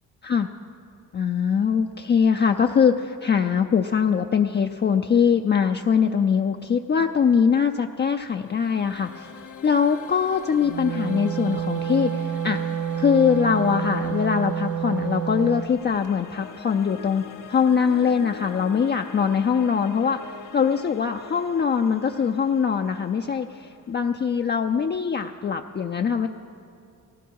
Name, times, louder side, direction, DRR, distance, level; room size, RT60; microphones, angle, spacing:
voice 1, 1.1-9.3 9.6-12.6 13.0-20.2 20.5-26.3, left 6 dB, 35° left, 5 dB, 0.4 m, -22 dB
sound 1, 7.9-25.0, left 7 dB, 70° left, 0.7 m, -44 dB
Wind instrument woodwind instrument, 10.6-15.7, right 9 dB, 70° right, 0.6 m, -28 dB
17.5 x 16.5 x 4.7 m, 2.4 s
wide cardioid pair, 125°, 32 cm